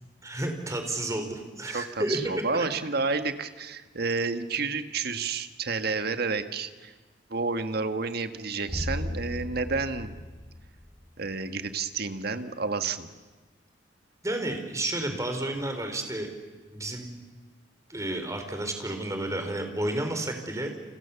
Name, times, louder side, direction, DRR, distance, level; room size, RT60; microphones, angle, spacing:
voice 1, 0.2-2.2 2.5-2.7 14.2-16.3 16.7-17.1 17.9-20.7, right 1 dB, 15° right, 5 dB, 4.1 m, -31 dB
voice 2, 1.7-6.9 7.3-10.1 11.2-13.1, right 4 dB, 55° right, 9 dB, 1.6 m, -30 dB
sound 1, 8.7-11.3, left 1 dB, 15° left, 3.8 m, -35 dB
29.5 x 28.5 x 7.1 m, 1.3 s
head